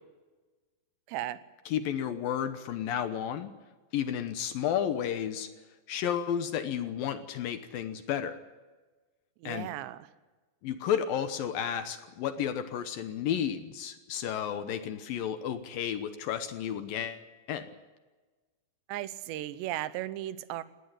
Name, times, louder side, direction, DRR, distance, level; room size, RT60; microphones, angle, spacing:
voice 1, 1.1-1.4 9.4-10.1 18.9-20.6, right 14 dB, 90° right, 14 dB, 3.1 m, -36 dB
voice 2, 1.7-3.5 3.9-5.5 5.9-8.4 9.4-9.7 10.6-17.2 17.5-17.7, left 9 dB, 70° left, 10 dB, 2.5 m, -32 dB
19.0 x 18.5 x 9.7 m, 1.3 s
omnidirectional pair, 4.9 m